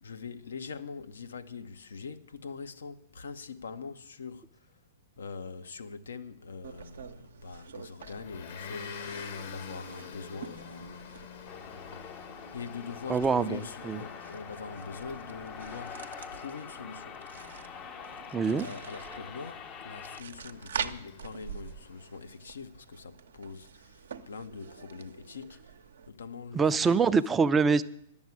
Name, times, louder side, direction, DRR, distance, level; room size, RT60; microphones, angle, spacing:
voice 1, 0.0-4.5 5.2-11.0 12.5-16.0 16.3-17.2 18.4-25.7 26.1-27.0, left 5 dB, 75° left, 0.8 m, -43 dB
sound 1, 6.6-26.1, right 7 dB, 70° right, 0.8 m, -46 dB
Motor vehicle (road) / Engine, 8.0-22.2, left 6 dB, 55° left, 1.2 m, -47 dB
sound 2, 11.5-20.2, left 7 dB, 30° left, 0.7 m, -45 dB
voice 2, 13.1-14.0 18.3-18.7 26.5-27.8, right 5 dB, 15° right, 0.5 m, -25 dB
11.0 x 7.3 x 9.4 m
figure-of-eight pair, 105°, 0 cm